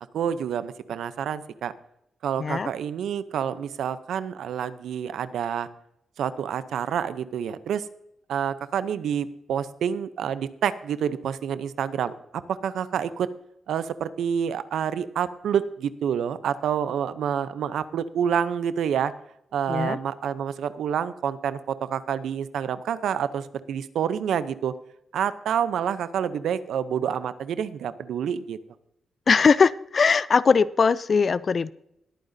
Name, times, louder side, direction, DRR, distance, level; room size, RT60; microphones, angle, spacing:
voice 1, 0.1-1.7 2.2-5.7 6.2-7.9 8.3-13.3 13.7-19.1 19.5-24.7 25.1-28.6, right 8 dB, 85° right, 14 dB, 0.7 m, -28 dB
voice 2, 2.4-2.7 19.7-20.0 29.3-31.7, left 5 dB, 40° left, 19 dB, 0.4 m, -20 dB
20.5 x 8.9 x 2.7 m, 0.81 s
wide cardioid pair, 145°, 0 cm